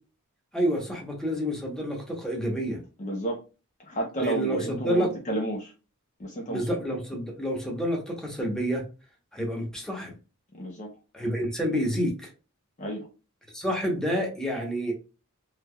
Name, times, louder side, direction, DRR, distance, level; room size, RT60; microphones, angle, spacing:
voice 1, 0.5-2.8 4.2-5.1 6.5-8.8 9.3-10.1 11.1-12.3 13.5-14.9, equal, 5° left, 0.9 m, -28 dB
voice 2, 3.0-3.4 3.9-5.7 6.2-6.7 10.5-10.9 12.8-13.1, right 1 dB, 35° left, 0.6 m, -31 dB
3.3 x 2.9 x 2.2 m
head